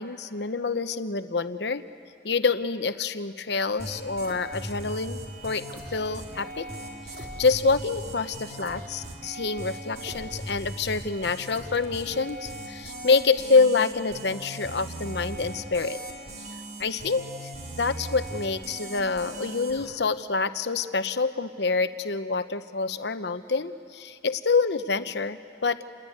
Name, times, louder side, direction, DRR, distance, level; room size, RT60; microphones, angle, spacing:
voice 1, 0.0-1.8 2.2-6.7 7.2-16.0 16.8-17.5 17.8-25.8, left 4 dB, 65° left, 11 dB, 0.9 m, -27 dB
sound 1, 3.8-19.8, right 1 dB, 55° right, 3.7 m, -39 dB
28.0 x 20.5 x 9.5 m, 2.3 s
head